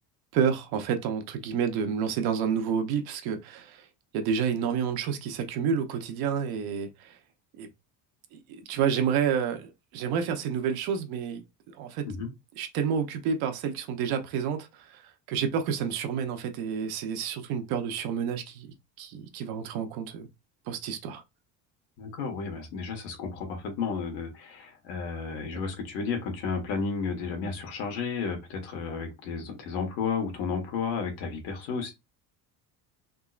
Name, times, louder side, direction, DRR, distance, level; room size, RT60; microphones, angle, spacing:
voice 1, 0.3-3.8 4.1-7.1 7.6-7.7 8.3-11.4 11.8-12.0 12.6-15.0 15.3-18.7 19.0-20.3 20.7-21.2, right 7 dB, 65° right, 0.8 m, -29 dB
voice 2, 22.0-31.9, left 5 dB, 80° left, 1.5 m, -32 dB
3.7 x 2.9 x 2.4 m
cardioid pair, 170°, 39 cm